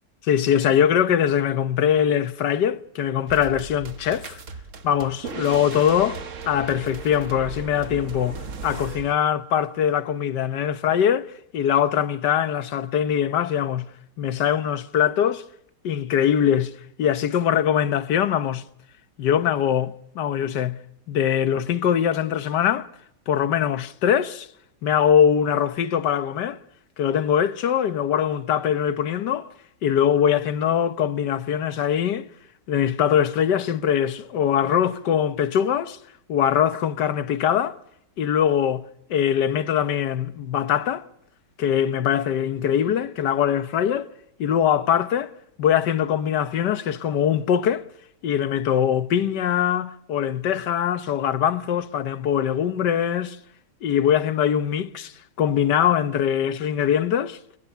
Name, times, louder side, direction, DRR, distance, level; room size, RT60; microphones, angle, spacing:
voice 1, 0.2-4.4 4.8-6.2 6.4-13.9 14.2-15.4 15.8-16.7 17.0-18.6 19.2-20.8 21.1-22.9 23.3-24.5 24.8-26.6 27.0-29.5 29.8-32.3 32.7-36.0 36.3-37.8 38.2-38.8 39.1-41.0 41.6-44.1 44.4-45.3 45.6-47.8 48.2-53.4 53.8-57.4, left 9 dB, 75° left, 1.6 m, -22 dB
sound 1, 3.3-9.1, right 5 dB, 50° right, 1.5 m, -37 dB
23.0 x 22.5 x 5.6 m
omnidirectional pair, 1.9 m